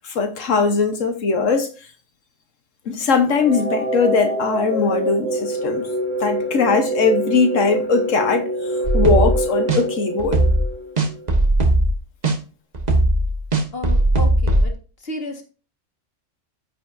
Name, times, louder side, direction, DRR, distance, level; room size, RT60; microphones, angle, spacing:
voice 1, 0.0-1.7 2.9-5.9 6.2-8.5 8.9-10.4, left 4 dB, 75° left, 1.5 m, -20 dB
sound 1, 3.3-11.3, right 1 dB, 10° left, 2.0 m, -25 dB
sound 2, 8.8-9.4 9.7-9.8 10.2-10.7 11.0-11.9 12.2-12.3 12.7-14.6, right 1 dB, 35° right, 1.5 m, -17 dB
voice 2, 13.7-14.7 15.0-15.4, left 2 dB, 50° left, 2.0 m, -32 dB
14.5 x 5.6 x 2.7 m
omnidirectional pair, 1.3 m